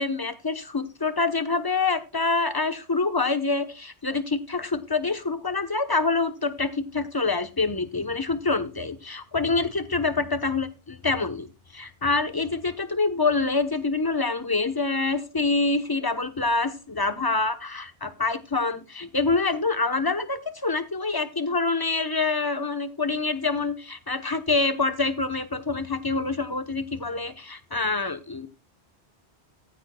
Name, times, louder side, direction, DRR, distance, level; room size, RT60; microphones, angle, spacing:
voice 1, 0.0-10.7 11.0-11.5 11.7-28.5, left 3 dB, 25° left, 9 dB, 0.8 m, -26 dB
15.0 x 10.0 x 2.2 m, 0.28 s
omnidirectional pair, 1.1 m